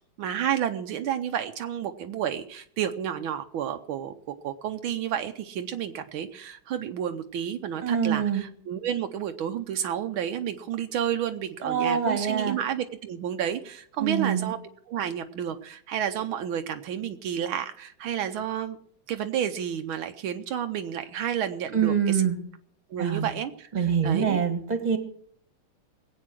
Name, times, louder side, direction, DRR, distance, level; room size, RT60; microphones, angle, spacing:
voice 1, 0.2-14.6 14.9-18.8 19.1-22.2 22.9-24.4, right 9 dB, 80° right, 7 dB, 1.6 m, -31 dB
voice 2, 7.8-8.4 11.6-12.6 14.0-14.5 21.7-22.4 23.0-23.3 23.7-25.0, right 7 dB, 20° right, 7 dB, 1.7 m, -25 dB
20.0 x 8.5 x 6.2 m, 0.63 s
omnidirectional pair, 2.3 m